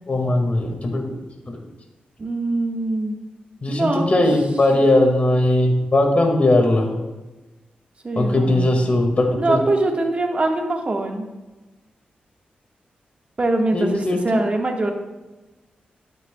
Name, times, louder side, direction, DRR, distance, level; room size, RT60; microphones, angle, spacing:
voice 1, 0.1-1.2 1.5-1.6 3.6-6.9 8.2-9.6 13.7-14.4, left 1 dB, 45° left, 3 dB, 2.0 m, -19 dB
voice 2, 2.2-3.2 3.7-4.2 8.0-8.7 9.4-11.3 13.4-14.9, right 2 dB, 40° right, 2 dB, 1.6 m, -23 dB
12.0 x 9.2 x 2.3 m, 1.1 s
cardioid pair, 70°, 3 cm